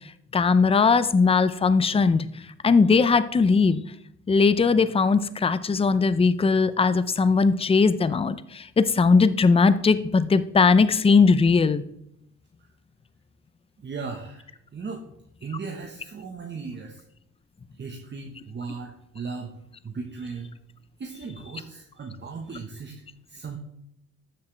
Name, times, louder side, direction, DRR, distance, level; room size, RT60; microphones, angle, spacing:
voice 1, 0.3-2.3 2.6-3.8 4.3-11.8, left 4 dB, 20° left, 14 dB, 0.6 m, -19 dB
voice 2, 13.8-15.1 15.4-17.0 17.8-19.5 19.8-20.6 21.0-23.0 23.3-23.6, right 4 dB, 35° right, 2 dB, 1.2 m, -37 dB
12.5 x 7.4 x 3.4 m, 0.76 s
cardioid pair, 90°, 30 cm